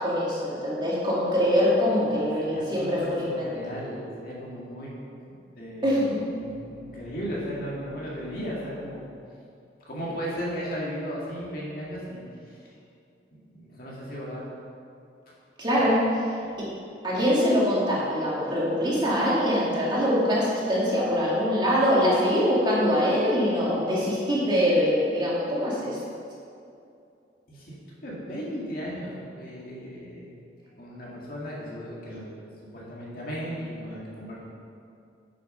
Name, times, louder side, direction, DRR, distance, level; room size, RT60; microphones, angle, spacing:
voice 1, 0.0-3.3 5.8-6.2 15.6-16.3 17.0-26.0, equal, 25° right, -7 dB, 2.2 m, -23 dB
voice 2, 2.4-4.9 5.6-5.9 6.3-9.1 9.9-12.6 13.3-14.4 27.5-27.7 28.0-30.3 30.8-32.3 32.7-34.4, equal, 55° left, -5 dB, 2.2 m, -36 dB
8.4 x 6.2 x 5.7 m, 2.5 s
head